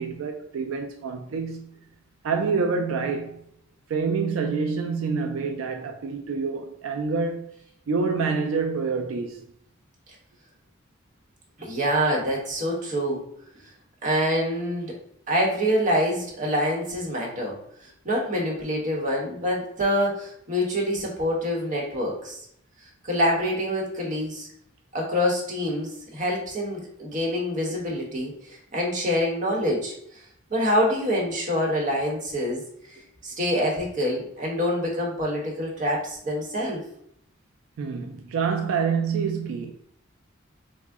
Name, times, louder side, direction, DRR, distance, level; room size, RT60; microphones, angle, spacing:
voice 1, 0.0-1.7 2.2-3.4 3.9-7.5 7.9-9.4 37.8-39.7, right 5 dB, 90° right, 0.3 m, -27 dB
voice 2, 11.6-13.2 14.0-14.9 15.3-17.6 17.8-22.4 23.0-24.5 24.9-30.2 30.5-32.6 32.9-36.8, equal, 40° right, 0.9 m, -26 dB
3.6 x 2.0 x 3.4 m
head